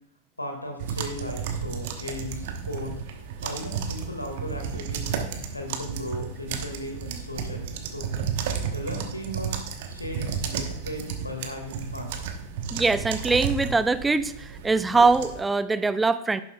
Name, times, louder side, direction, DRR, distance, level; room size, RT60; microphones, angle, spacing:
voice 1, 0.4-2.9 3.4-5.1 5.5-8.1 8.7-9.6 9.9-12.2, left 1 dB, 85° left, 3 dB, 1.9 m, -36 dB
sound 1, 0.8-15.4, right 7 dB, 50° right, 1.1 m, -33 dB
voice 2, 12.7-16.4, right 3 dB, 10° right, 14 dB, 0.5 m, -22 dB
11.0 x 10.5 x 2.3 m, 0.82 s
figure-of-eight pair, 90°, 0 cm